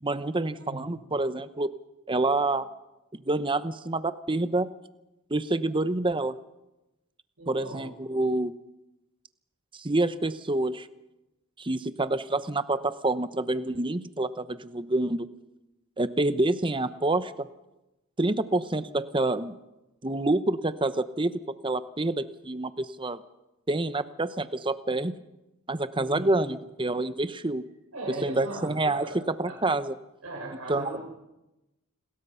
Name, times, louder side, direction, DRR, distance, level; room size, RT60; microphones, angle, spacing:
voice 1, 0.0-1.7 2.1-2.7 3.3-4.7 5.3-6.3 7.5-8.5 9.7-10.9 11.6-15.3 16.0-17.5 18.2-19.5 20.0-23.2 23.7-25.2 25.7-27.6 28.1-29.1 29.4-29.9 30.7-31.0, right 2 dB, 25° right, 13 dB, 0.9 m, -27 dB
voice 2, 0.6-0.9 7.4-7.9 26.0-26.3 27.9-28.7 28.9-29.2 29.5-29.6 30.2-31.0, right 2 dB, 75° right, -3 dB, 5.7 m, -38 dB
29.5 x 21.5 x 5.7 m, 0.99 s
head